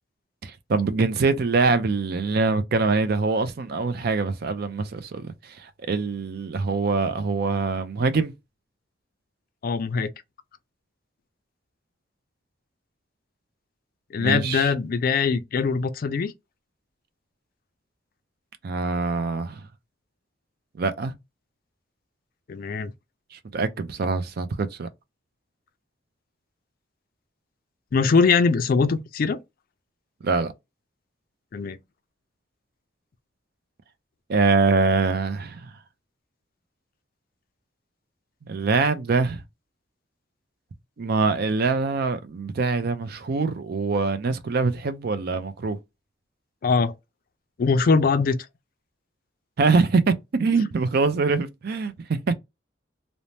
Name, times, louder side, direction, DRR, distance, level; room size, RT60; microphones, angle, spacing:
voice 1, 0.4-8.3 14.2-14.7 18.6-19.6 20.8-21.1 23.3-24.9 30.2-30.5 34.3-35.7 38.4-39.4 41.0-45.8 49.6-50.1 50.4-52.3, right 4 dB, 55° right, 0.4 m, -24 dB
voice 2, 9.6-10.1 14.1-16.3 22.5-22.9 27.9-29.4 31.5-31.8 46.6-46.9 47.6-48.4, left 4 dB, 50° left, 0.3 m, -22 dB
2.6 x 2.1 x 3.1 m
head